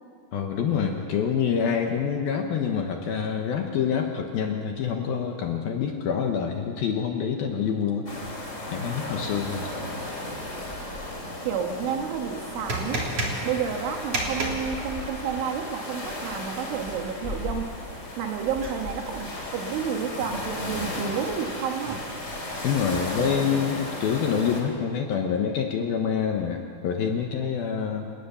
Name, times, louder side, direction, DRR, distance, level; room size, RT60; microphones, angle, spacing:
voice 1, 0.3-8.1 8.7-9.7 22.6-28.1, left 7 dB, 70° left, 3 dB, 2.5 m, -26 dB
sound 1, 8.1-24.6, left 1 dB, 20° left, 2.8 m, -35 dB
sound 2, 9.3-22.1, right 2 dB, 35° right, 3.6 m, -38 dB
voice 2, 11.4-13.1 13.4-17.7 18.2-22.1, right 7 dB, 80° right, 5 dB, 3.9 m, -30 dB
28.5 x 19.0 x 7.0 m, 2.3 s
omnidirectional pair, 5.6 m